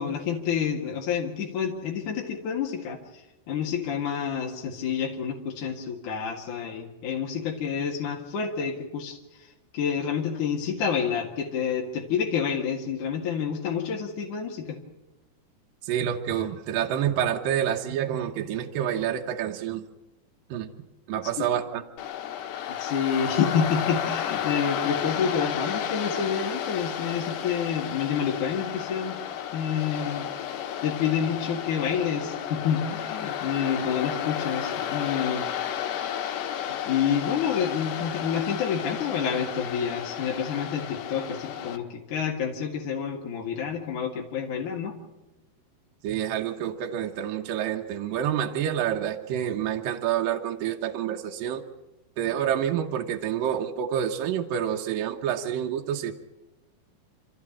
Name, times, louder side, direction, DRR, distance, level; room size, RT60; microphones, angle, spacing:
voice 1, 0.0-3.0 3.5-9.2 9.7-14.8 21.4-21.5 22.8-29.2 29.5-30.2 30.8-35.4 36.9-44.9, left 7 dB, 55° left, 0 dB, 3.0 m, -28 dB
voice 2, 15.8-19.8 20.5-20.7 21.1-21.8 46.0-51.6 52.2-56.1, right 9 dB, 70° right, 2 dB, 2.4 m, -28 dB
Waves surf, 22.0-41.8, left 9 dB, 75° left, 3.4 m, -32 dB
29.0 x 13.5 x 8.8 m, 1.0 s
omnidirectional pair, 4.9 m